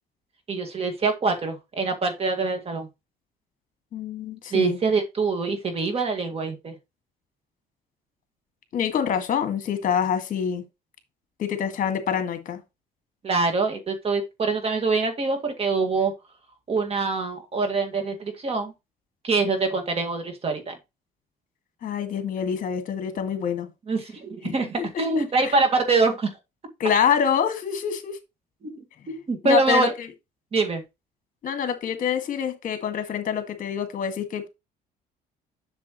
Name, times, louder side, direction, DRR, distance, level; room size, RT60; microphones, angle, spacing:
voice 1, 0.5-2.9 4.5-6.7 13.2-16.1 16.7-18.7 19.2-20.8 23.9-26.3 28.6-29.9 30.5-30.8, right 3 dB, 35° right, 2.0 m, -24 dB
voice 2, 3.9-4.8 8.7-10.6 11.4-12.6 21.8-23.7 24.4-25.5 26.8-28.2 29.4-30.1 31.4-34.5, left 8 dB, 50° left, 1.8 m, -26 dB
7.5 x 6.8 x 3.1 m
cardioid pair, 110°, 17 cm